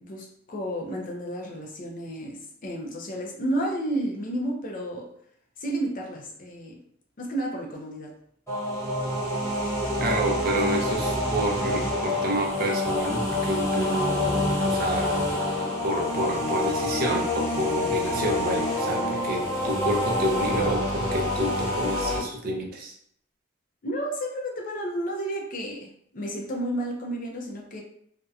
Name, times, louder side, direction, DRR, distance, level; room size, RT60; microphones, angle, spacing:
voice 1, 0.0-5.1 5.6-6.8 7.2-8.1 23.8-27.8, right 1 dB, 40° left, 0 dB, 0.4 m, -31 dB
sound 1, 8.5-22.2, left 1 dB, 15° left, 0.8 m, -27 dB
voice 2, 10.0-15.2 15.8-22.9, right 1 dB, 45° right, 1 dB, 0.5 m, -29 dB
2.6 x 2.1 x 2.3 m, 0.68 s
head